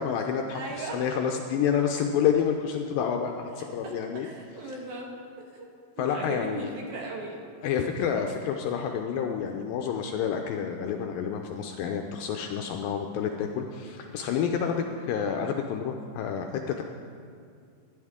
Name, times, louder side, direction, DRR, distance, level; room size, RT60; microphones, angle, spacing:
voice 1, 0.0-4.3 6.0-6.8 7.6-16.8, left 7 dB, 80° left, 4 dB, 2.1 m, -29 dB
voice 2, 0.5-1.0 3.6-3.7 4.2-5.1 5.4-5.7 6.0-7.8 14.6-15.0, right 2 dB, 60° right, -1 dB, 2.5 m, -38 dB
18.0 x 10.5 x 3.6 m, 2.3 s
omnidirectional pair, 4.5 m